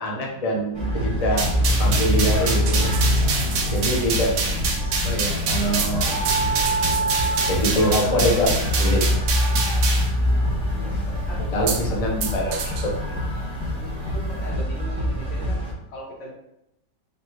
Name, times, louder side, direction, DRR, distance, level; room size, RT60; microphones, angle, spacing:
voice 1, 0.0-1.5 1.8-3.1 3.4-4.3 5.0-6.2 7.5-9.0 11.5-12.9, equal, 65° left, -2 dB, 0.3 m, -24 dB
sound 1, 0.7-15.7, equal, 5° left, 1.0 m, -24 dB
sound 2, 1.4-10.1, right 4 dB, 65° right, 1.1 m, -27 dB
sound 3, 2.2-14.6, right 4 dB, 80° right, 1.2 m, -35 dB
voice 2, 10.7-12.0 13.7-16.3, equal, 80° left, -1 dB, 1.6 m, -39 dB
4.3 x 2.8 x 2.9 m, 0.83 s
omnidirectional pair, 1.9 m